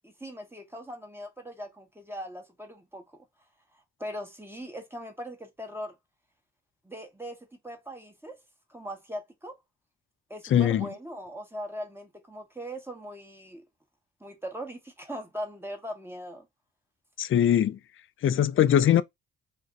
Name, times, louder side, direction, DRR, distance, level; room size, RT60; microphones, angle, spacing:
voice 1, 0.0-3.2 4.0-5.9 6.8-8.4 8.7-9.6 10.3-13.6 14.2-16.5, equal, 10° right, 1.1 m, -40 dB
voice 2, 10.5-10.9 17.2-17.8 18.2-19.0, left 10 dB, 45° left, 0.4 m, -21 dB
2.5 x 2.2 x 3.8 m
supercardioid pair, 55°, 30 cm